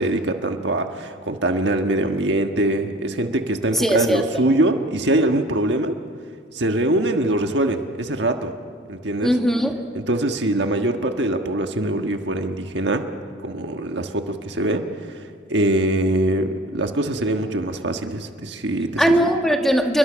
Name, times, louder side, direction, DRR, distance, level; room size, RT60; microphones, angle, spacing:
voice 1, 0.0-6.0 6.5-8.5 8.9-9.3 9.9-13.1 13.4-15.2 15.5-19.1, right 1 dB, 70° right, 5 dB, 1.5 m, -23 dB
voice 2, 3.7-4.4 9.2-9.7 19.0-20.0, equal, ahead, 3 dB, 2.0 m, -19 dB
29.0 x 22.5 x 6.4 m, 2.2 s
head